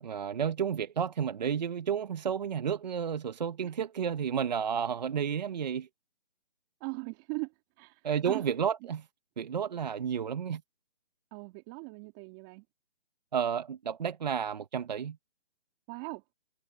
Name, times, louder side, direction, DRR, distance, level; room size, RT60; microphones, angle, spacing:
voice 1, 0.0-5.9 8.0-9.0 9.4-10.6 13.3-15.2, right 7 dB, 40° right, 1.4 m, -31 dB
voice 2, 6.8-8.5 11.3-12.6 15.9-16.2, right 32 dB, 15° right, 3.4 m, -40 dB
hypercardioid pair, 160°, 34 cm